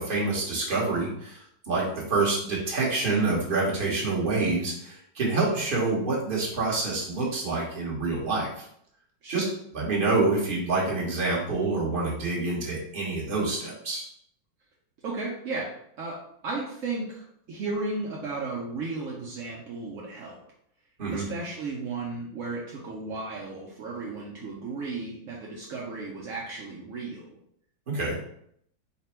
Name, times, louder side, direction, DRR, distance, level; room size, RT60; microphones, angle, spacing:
voice 1, 0.0-1.4 1.7-8.7 9.3-14.0 21.0-21.3 27.9-28.1, right 3 dB, 35° right, -5 dB, 1.1 m, -27 dB
voice 2, 15.0-20.4 21.1-27.2, right 3 dB, 70° right, -3 dB, 0.7 m, -34 dB
4.2 x 2.2 x 4.3 m, 0.69 s
omnidirectional pair, 2.1 m